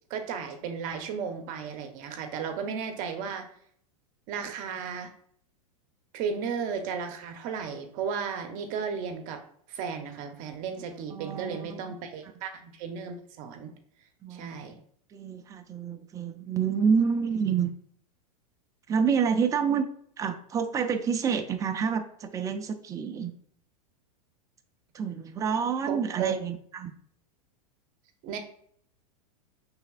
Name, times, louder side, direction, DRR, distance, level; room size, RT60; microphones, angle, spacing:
voice 1, 0.1-3.5 4.3-5.1 6.1-9.4 9.7-13.8 14.3-14.8 25.9-26.3 28.2-28.4, right 6 dB, 45° right, 6 dB, 0.8 m, -34 dB
voice 2, 11.1-11.8 14.2-14.5 15.1-17.7 18.9-19.9 20.2-23.3 24.9-26.9, right 6 dB, 15° right, 7 dB, 0.4 m, -28 dB
5.7 x 3.4 x 2.4 m, 0.63 s
hypercardioid pair, 115°, 19 cm